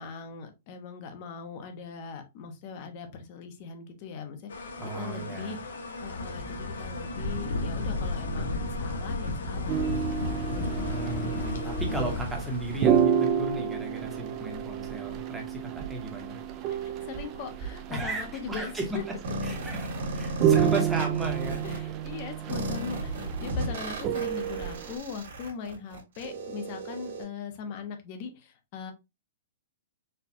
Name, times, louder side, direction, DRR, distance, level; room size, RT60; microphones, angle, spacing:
voice 1, 0.0-4.7 5.0-5.7 6.0-10.4 16.7-19.0 21.6-28.9, left 6 dB, 30° left, 0.7 m, -40 dB
sound 1, 4.5-13.0, left 2 dB, 90° left, 1.0 m, -33 dB
voice 2, 4.8-5.6 10.9-16.4 17.9-19.1 19.4-21.8, right 2 dB, 5° right, 0.8 m, -35 dB
sound 2, 9.7-25.0, right 9 dB, 25° right, 0.3 m, -30 dB
sound 3, 19.2-21.8 22.5-27.2, right 1 dB, 65° right, 1.5 m, -35 dB
4.2 x 2.2 x 2.7 m
hypercardioid pair, 170°, 0 cm